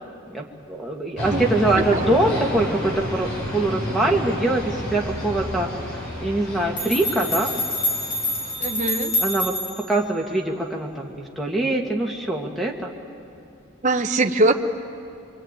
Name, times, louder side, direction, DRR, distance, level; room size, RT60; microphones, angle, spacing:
voice 1, 0.3-5.7 6.2-7.5 9.2-9.6 9.9-12.9, right 2 dB, ahead, 1 dB, 2.1 m, -23 dB
sound 1, 1.2-9.5, left 1 dB, 65° left, 5.9 m, -31 dB
sound 2, 6.8-9.9, left 2 dB, 40° left, 6.7 m, -26 dB
voice 2, 8.6-9.1 13.8-14.5, right 2 dB, 35° right, 5 dB, 1.1 m, -21 dB
25.5 x 24.5 x 9.1 m, 2.5 s
head